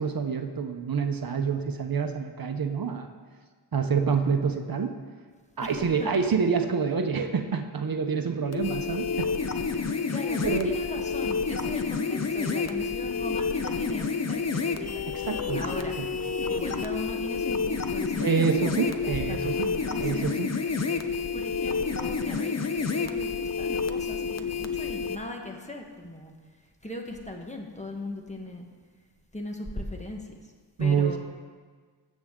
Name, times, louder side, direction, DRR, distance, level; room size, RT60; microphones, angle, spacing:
voice 1, 0.0-3.1 3.7-4.9 5.6-9.3 9.6-9.7 10.4-10.7 15.3-15.6 16.0-16.1 18.2-19.7 20.0-20.5 30.8-31.2, right 6 dB, 55° right, 5 dB, 0.8 m, -27 dB
voice 2, 5.6-6.1 10.1-15.1 15.5-16.0 16.5-20.4 21.3-26.3 26.8-28.7 29.3-30.3 30.8-31.2, left 1 dB, 15° left, 2 dB, 1.2 m, -38 dB
sound 1, 8.5-25.2, left 5 dB, 40° left, 0.7 m, -29 dB
15.5 x 7.4 x 3.7 m, 1.5 s
wide cardioid pair, 100°, 42 cm